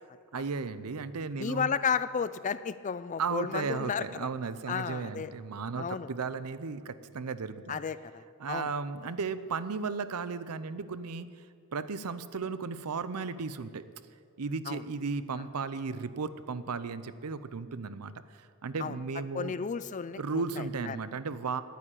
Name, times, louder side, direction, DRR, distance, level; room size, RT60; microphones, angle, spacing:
voice 1, 0.3-1.7 3.2-7.8 8.4-11.3 11.7-13.8 14.4-18.1 18.6-19.6 20.2-21.6, right 4 dB, 85° right, 13 dB, 0.6 m, -35 dB
voice 2, 1.4-4.3 4.7-5.3 5.8-6.1 7.7-8.7 14.7-14.8 18.8-19.0 19.3-21.0, left 6 dB, 35° left, 15 dB, 0.4 m, -33 dB
10.0 x 9.3 x 10.0 m, 2.3 s
head